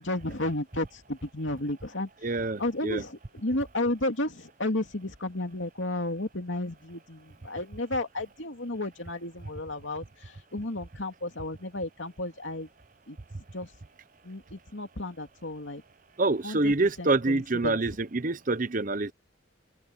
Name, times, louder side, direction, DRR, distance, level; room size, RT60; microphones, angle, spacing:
voice 1, 0.0-2.1 2.6-12.7 13.1-13.2 13.5-13.7 14.2-15.8 16.4-16.7 17.0-17.8, left 1 dB, 65° left, 2.8 m, -33 dB
voice 2, 2.2-3.0 16.2-19.1, right 2 dB, 40° right, 0.8 m, -26 dB
open air
head